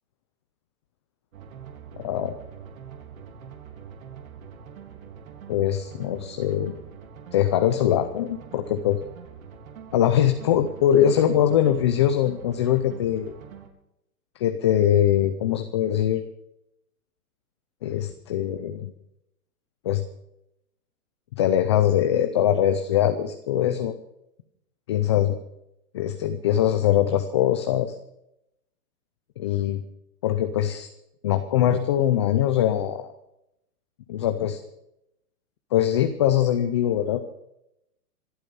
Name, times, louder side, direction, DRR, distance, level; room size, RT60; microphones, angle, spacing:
sound 1, 1.3-13.7, right 7 dB, 65° right, 3.7 m, -44 dB
voice 1, 2.0-2.4 5.5-6.7 7.3-9.0 9.9-13.3 14.4-16.2 17.8-18.9 19.8-20.0 21.3-23.9 24.9-25.4 25.9-27.9 29.4-29.8 30.2-30.9 31.2-33.1 34.1-34.6 35.7-37.3, left 10 dB, 20° left, 8 dB, 0.5 m, -22 dB
26.0 x 8.8 x 5.5 m, 0.83 s
hypercardioid pair, 155°, 45 cm